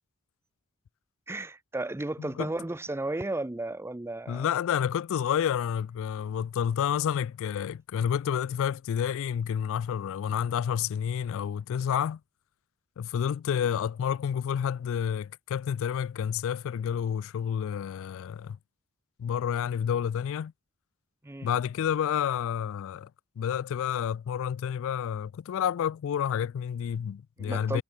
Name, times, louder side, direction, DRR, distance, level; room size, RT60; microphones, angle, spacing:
voice 1, 1.3-4.5 21.2-21.5 27.4-27.8, right 2 dB, 10° right, 0.5 m, -34 dB
voice 2, 2.2-2.5 4.3-12.2 13.0-18.6 19.2-20.5 21.4-23.1 23.4-27.8, left 8 dB, 60° left, 0.3 m, -29 dB
head